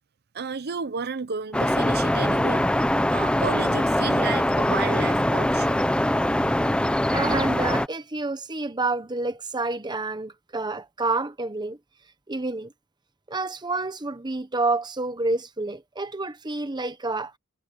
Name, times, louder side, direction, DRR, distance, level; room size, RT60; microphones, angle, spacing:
voice 1, 0.3-2.6 3.1-5.8, right 5 dB, 50° right, 0.7 m, -32 dB
sound 1, 1.5-7.9, left 1 dB, 5° left, 0.7 m, -22 dB
voice 2, 7.1-11.8 12.3-12.7 13.3-17.3, right 3 dB, 20° right, 1.1 m, -28 dB
head